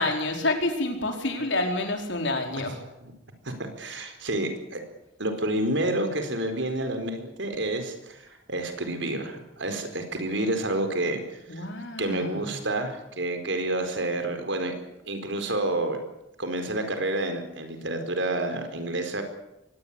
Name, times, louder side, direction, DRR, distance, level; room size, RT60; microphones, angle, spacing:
voice 1, 0.0-2.8 11.5-12.5, left 2 dB, 75° left, 4 dB, 4.8 m, -28 dB
voice 2, 3.4-4.8 5.2-11.2 11.5-11.6 12.0-14.7 15.1-16.0 16.4-19.2, right 1 dB, 75° right, 7 dB, 4.5 m, -29 dB
23.0 x 19.0 x 8.7 m, 0.88 s
head